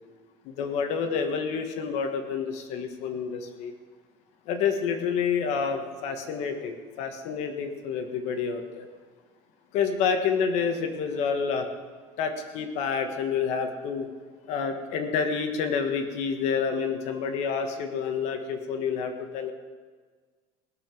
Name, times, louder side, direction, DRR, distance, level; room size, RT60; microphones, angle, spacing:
voice 1, 0.4-3.7 4.5-8.9 9.7-11.7 12.2-14.1 14.5-19.5, left 6 dB, 55° left, 6 dB, 1.5 m, -28 dB
19.5 x 7.1 x 6.1 m, 1.5 s
cardioid pair, 160°, 14 cm